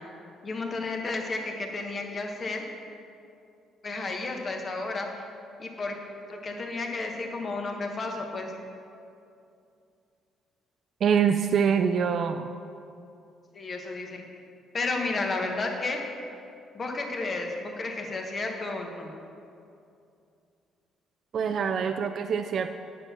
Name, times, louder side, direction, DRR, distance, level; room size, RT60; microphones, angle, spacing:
voice 1, 0.4-2.6 3.8-5.1 5.6-6.0 6.3-8.5 13.5-14.2 14.7-16.0 16.7-19.1, left 3 dB, 35° left, 2 dB, 1.1 m, -32 dB
voice 2, 11.0-12.5 21.3-22.7, right 7 dB, 55° right, 7 dB, 0.3 m, -25 dB
9.0 x 5.9 x 5.7 m, 2.6 s
cardioid pair, 110°, 0 cm